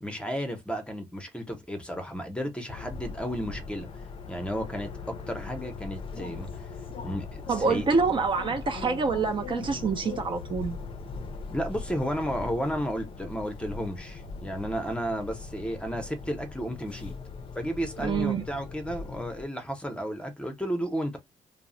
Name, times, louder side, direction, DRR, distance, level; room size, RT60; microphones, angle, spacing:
voice 1, 0.0-3.9 4.3-6.7 7.0-7.9 11.5-17.2 17.5-21.2, equal, 10° left, 0.7 m, -33 dB
sound 1, 2.7-19.5, left 4 dB, 45° left, 0.5 m, -40 dB
voice 2, 7.5-10.8 18.0-18.4, right 4 dB, 40° right, 0.5 m, -26 dB
2.3 x 2.0 x 3.7 m
cardioid pair, 115°, 13 cm